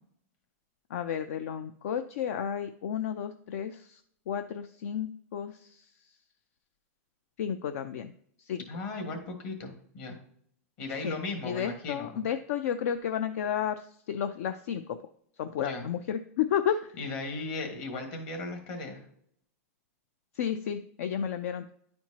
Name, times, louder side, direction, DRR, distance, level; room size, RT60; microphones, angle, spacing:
voice 1, 0.9-6.2 7.4-8.1 8.4-8.6 11.0-15.0 15.4-17.0 20.3-21.7, left 9 dB, 65° left, 10 dB, 0.4 m, -32 dB
voice 2, 8.6-10.2 10.8-12.1 15.6-15.9 17.0-19.0, left 3 dB, 45° left, 4 dB, 1.6 m, -37 dB
10.5 x 4.4 x 2.8 m, 0.66 s
supercardioid pair, 150°, 8 cm